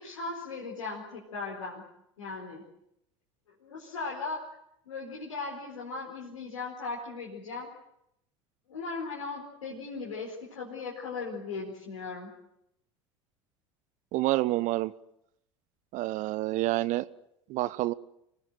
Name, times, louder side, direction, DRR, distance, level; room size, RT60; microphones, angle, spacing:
voice 1, 0.0-1.8 2.2-2.6 3.6-4.4 4.9-7.7 8.7-12.3, left 4 dB, 80° left, 4.6 m, -38 dB
voice 2, 14.1-14.9 15.9-17.1 17.5-17.9, right 17 dB, 50° right, 0.9 m, -28 dB
25.5 x 19.0 x 9.2 m
figure-of-eight pair, 70°, 16 cm